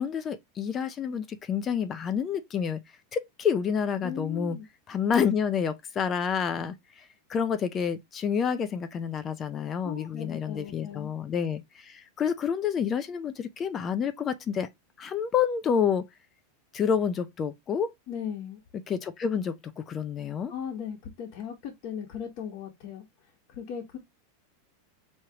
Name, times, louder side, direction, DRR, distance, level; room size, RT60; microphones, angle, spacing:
voice 1, 0.0-2.8 3.1-4.6 4.9-7.0 7.3-14.7 15.0-16.1 16.7-17.9 18.9-20.5, left 7 dB, 25° left, 0.4 m, -28 dB
voice 2, 4.0-4.7 9.8-11.1 18.1-18.6 20.5-23.0 23.5-24.0, left 8 dB, 45° left, 1.3 m, -37 dB
4.8 x 3.1 x 2.8 m
supercardioid pair, 150°, 0 cm